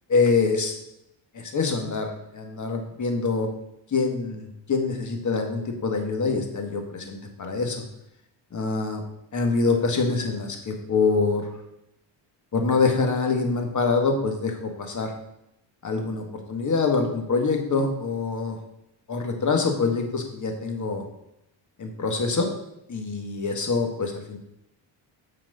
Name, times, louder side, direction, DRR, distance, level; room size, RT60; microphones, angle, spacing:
voice 1, 0.1-0.8 1.3-3.5 3.9-7.8 8.5-9.0 9.3-11.5 12.5-15.1 15.8-18.6 19.1-21.0 21.8-22.5 22.9-24.4, left 4 dB, 40° left, 4 dB, 1.9 m, -25 dB
7.6 x 4.8 x 6.9 m, 0.82 s
cardioid pair, 95°, 44 cm